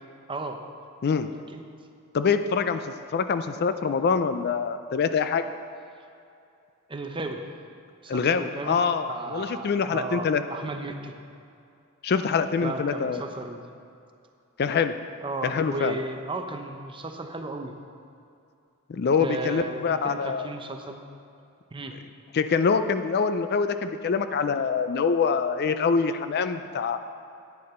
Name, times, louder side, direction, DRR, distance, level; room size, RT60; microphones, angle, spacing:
voice 1, 0.3-0.6 1.5-1.6 6.9-7.5 8.0-8.8 9.1-11.1 12.6-13.6 15.2-17.7 19.2-21.0 21.7-22.0, right 2 dB, 25° right, 5 dB, 0.7 m, -34 dB
voice 2, 2.1-2.8 3.1-5.4 8.1-10.4 12.0-13.2 14.6-15.0 15.4-16.0 18.9-20.5 22.3-27.0, left 5 dB, 45° left, 10 dB, 0.4 m, -25 dB
10.5 x 9.6 x 4.3 m, 2.6 s
head